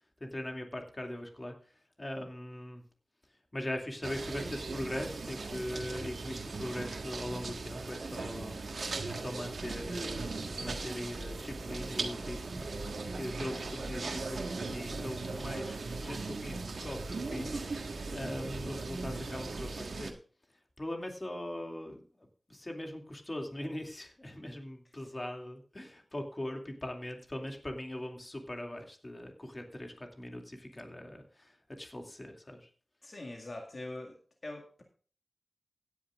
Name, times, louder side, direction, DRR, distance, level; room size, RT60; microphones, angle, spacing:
voice 1, 0.2-1.7 2.0-2.8 3.5-8.6 9.1-12.7 13.2-14.4 14.7-20.2 20.8-32.7, left 1 dB, 30° left, 3 dB, 2.5 m, -41 dB
sound 1, 4.0-20.1, right 3 dB, 85° right, 1.5 m, -38 dB
voice 2, 33.0-34.2 34.4-34.8, left 2 dB, 55° left, 2 dB, 1.9 m, -42 dB
17.0 x 10.0 x 2.5 m, 0.40 s
wide cardioid pair, 65°, 0 cm